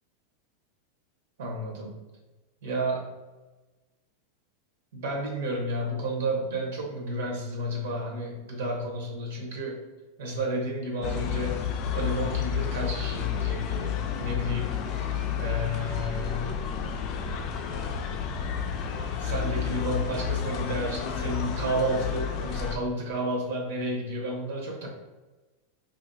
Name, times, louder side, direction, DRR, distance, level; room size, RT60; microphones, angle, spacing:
voice 1, 1.4-1.9 2.6-3.1 4.9-9.8 10.2-11.7 11.9-14.8 15.4-16.6 19.2-24.9, right 1 dB, 75° right, -1 dB, 1.0 m, -31 dB
sound 1, 11.0-22.8, left 8 dB, 40° left, 0.3 m, -30 dB
3.0 x 2.7 x 2.7 m, 1.2 s
supercardioid pair, 145°, 0 cm